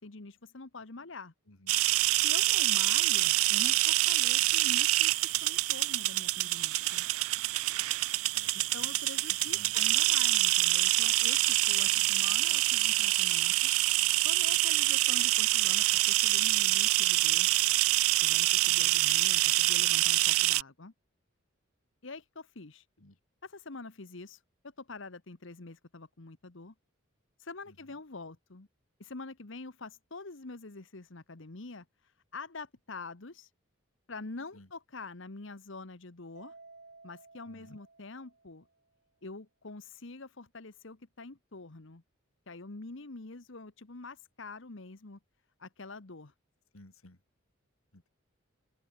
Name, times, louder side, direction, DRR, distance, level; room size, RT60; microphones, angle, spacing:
voice 1, 0.0-1.3 2.1-7.1 8.7-13.5 14.2-17.5 18.2-20.9 22.0-22.9 23.4-26.7 27.4-28.7 29.0-33.5 34.1-36.5 37.0-38.7 39.2-42.0 42.5-45.2 45.6-46.3, left 3 dB, 60° left, 1.2 m, -45 dB
voice 2, 1.5-1.8 8.3-8.9 9.3-9.7 11.8-12.1 18.7-18.8 23.0-23.2 34.5-34.7 37.5-37.8 46.7-47.2 47.9-48.1, left 1 dB, 80° left, 3.1 m, -56 dB
sound 1, 1.7-20.6, right 18 dB, 90° right, 0.5 m, -26 dB
Mallet percussion, 36.3-38.8, right 3 dB, 50° right, 3.9 m, -55 dB
open air
head